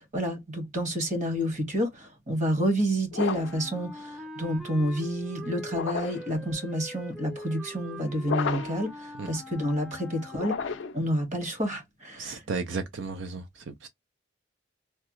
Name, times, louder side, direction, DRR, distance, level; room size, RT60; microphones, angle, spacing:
voice 1, 0.0-12.4, equal, 40° right, 1.4 m, -29 dB
sound 1, 3.1-3.7 5.7-6.3 8.2-8.9 10.3-11.1, left 5 dB, 70° left, 0.4 m, -32 dB
Wind instrument woodwind instrument, 3.3-11.0, equal, 5° right, 0.4 m, -43 dB
voice 2, 12.2-13.9, right 4 dB, 75° right, 0.5 m, -34 dB
3.2 x 2.3 x 2.9 m
head